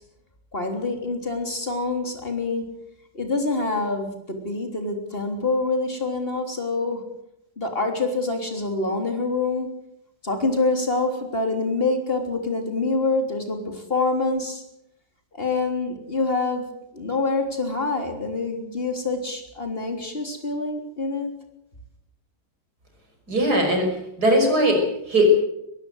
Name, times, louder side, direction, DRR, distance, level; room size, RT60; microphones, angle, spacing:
voice 1, 0.5-2.7 3.1-7.0 7.6-9.7 10.2-14.6 15.3-16.6 16.9-21.3, left 3 dB, 35° left, 5 dB, 3.7 m, -26 dB
voice 2, 23.3-23.9 24.2-25.3, right 1 dB, 70° right, 4 dB, 6.2 m, -19 dB
22.0 x 15.5 x 7.9 m, 0.81 s
omnidirectional pair, 1.8 m